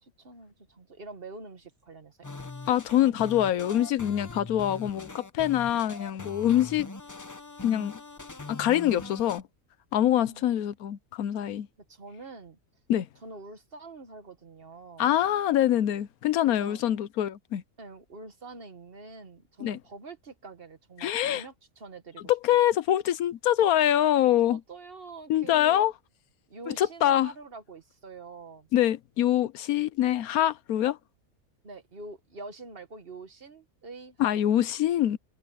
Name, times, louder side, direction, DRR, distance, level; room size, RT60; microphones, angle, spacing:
voice 1, 0.0-2.3 3.0-3.3 10.1-10.6 11.9-12.6 13.2-15.1 16.4-16.8 17.8-22.6 24.5-25.9 26.5-28.7 31.6-34.4, right 3 dB, 40° right, 1.6 m, -45 dB
sound 1, 2.2-9.4, left 3 dB, 20° left, 0.5 m, -42 dB
voice 2, 2.7-6.9 7.6-7.9 8.5-9.4 9.9-11.7 12.9-13.1 15.0-17.6 19.6-19.8 21.0-21.4 22.3-24.6 25.3-25.9 26.7-27.3 28.7-31.0 34.2-35.2, left 12 dB, 80° left, 1.2 m, -24 dB
omnidirectional pair, 1.5 m